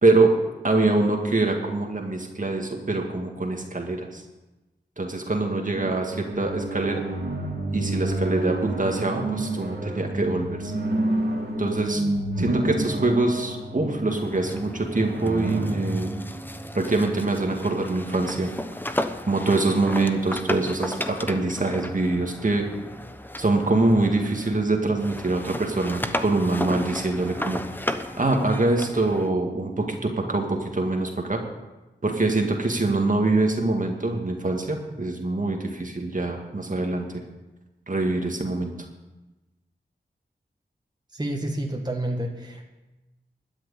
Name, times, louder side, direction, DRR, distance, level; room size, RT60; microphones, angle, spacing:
voice 1, 0.0-0.4 0.6-4.2 5.0-7.0 7.7-10.7 11.6-12.0 12.4-16.1 16.7-18.5 19.3-22.7 23.4-27.6 28.2-31.4 32.0-37.2 37.9-38.7, right 2 dB, 45° right, 2 dB, 2.0 m, -24 dB
sound 1, 5.7-17.4, right 1 dB, 60° right, 2.7 m, -30 dB
sound 2, 14.1-24.7 25.0-29.3, left 1 dB, 10° left, 0.9 m, -34 dB
voice 2, 41.1-42.6, right 1 dB, 20° right, 1 dB, 1.8 m, -29 dB
12.5 x 6.5 x 9.8 m, 1.1 s
wide cardioid pair, 55°, 18 cm